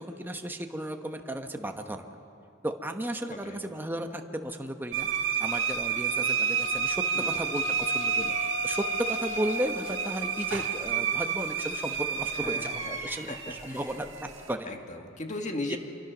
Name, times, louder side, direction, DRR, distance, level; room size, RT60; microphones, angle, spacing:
voice 1, 0.0-2.1 2.6-14.7 15.7-15.8, right 1 dB, 10° right, 5 dB, 1.1 m, -35 dB
voice 2, 3.3-3.6 7.1-7.4 8.3-8.4 12.4-13.8 14.6-15.8, left 2 dB, 40° left, 3 dB, 1.7 m, -38 dB
sound 1, 4.9-14.5, right 6 dB, 80° right, 1.6 m, -30 dB
Wind instrument woodwind instrument, 6.1-10.9, left 6 dB, 85° left, 1.8 m, -41 dB
25.5 x 23.5 x 6.1 m, 2.7 s
head